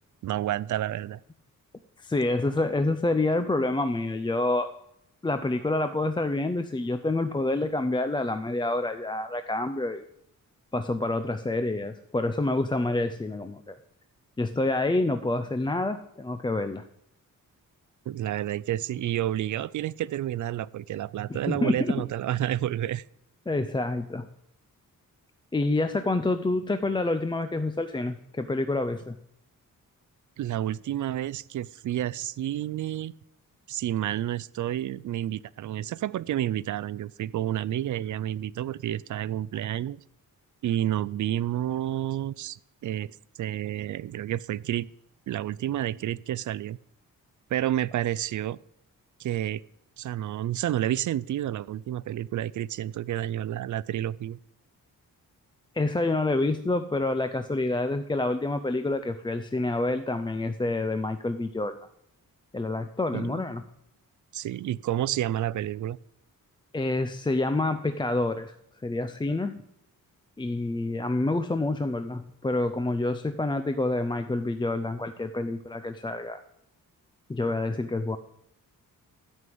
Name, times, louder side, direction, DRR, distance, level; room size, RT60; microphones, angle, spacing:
voice 1, 0.2-1.2 18.1-23.0 30.4-33.1 33.7-40.0 40.6-43.1 43.4-44.9 45.3-46.8 47.5-48.6 49.2-49.6 50.0-54.4 63.1-63.4 64.3-66.0, right 12 dB, 60° right, 19 dB, 0.4 m, -30 dB
voice 2, 2.0-4.7 5.2-10.0 10.7-13.8 14.4-16.8 21.3-21.9 23.5-24.3 25.5-29.2 55.7-61.9 62.5-63.6 66.7-68.5 68.8-69.6 70.4-76.4 77.3-78.2, left 2 dB, 15° left, 8 dB, 0.5 m, -27 dB
12.5 x 5.5 x 7.7 m, 0.75 s
wide cardioid pair, 135°, 34 cm